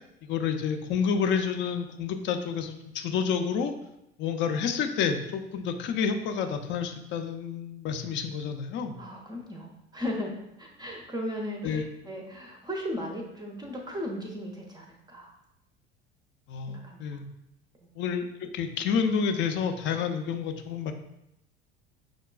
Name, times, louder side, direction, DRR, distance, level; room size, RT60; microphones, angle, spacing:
voice 1, 0.2-3.7 4.2-9.0 11.6-11.8 16.5-17.2 18.0-20.9, left 6 dB, 35° left, 6 dB, 0.5 m, -29 dB
voice 2, 9.0-10.3 10.6-15.3 16.7-17.2 17.8-17.9, left 1 dB, 15° right, 0 dB, 0.6 m, -36 dB
5.8 x 2.2 x 2.2 m, 0.83 s
figure-of-eight pair, 65°, 32 cm